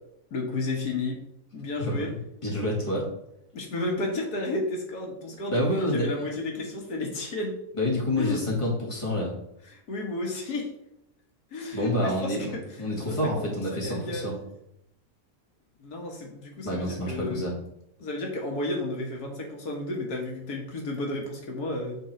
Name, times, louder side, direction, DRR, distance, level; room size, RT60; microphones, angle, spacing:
voice 1, 0.3-1.2 1.5-2.1 3.5-7.6 8.2-8.4 9.7-10.7 11.5-12.4 13.0-14.4 15.8-17.4 18.0-22.0, left 2 dB, 85° left, 1 dB, 1.9 m, -32 dB
voice 2, 2.4-3.1 5.5-6.1 7.8-9.3 11.7-14.3 16.6-17.5, left 1 dB, 20° left, -3 dB, 2.1 m, -28 dB
9.0 x 3.9 x 4.4 m, 0.79 s
omnidirectional pair, 1.6 m